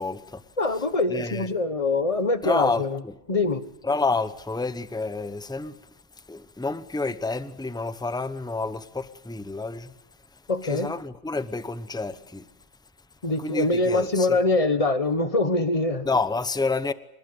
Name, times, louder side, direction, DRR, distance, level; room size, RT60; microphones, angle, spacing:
voice 1, 0.0-0.4 1.1-1.5 2.4-3.1 3.8-5.8 6.3-9.9 10.6-12.5 13.4-14.4 16.0-16.9, left 3 dB, 5° left, 0.5 m, -29 dB
voice 2, 0.6-3.0 3.3-3.6 10.5-10.9 13.2-16.1, left 2 dB, 25° left, 1.3 m, -24 dB
26.5 x 19.5 x 8.0 m
omnidirectional pair, 1.7 m